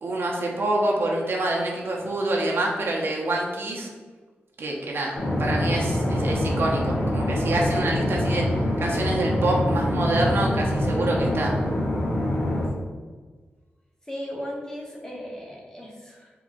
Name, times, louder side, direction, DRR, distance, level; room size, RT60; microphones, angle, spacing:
voice 1, 0.0-3.9 4.6-8.4 8.8-11.5, right 2 dB, 70° right, -2 dB, 0.9 m, -26 dB
sound 1, 5.1-12.7, left 1 dB, 80° left, 1.4 m, -25 dB
voice 2, 14.1-16.3, equal, 15° left, -3 dB, 1.1 m, -36 dB
3.8 x 3.0 x 3.7 m, 1.4 s
wide cardioid pair, 85°, 4 cm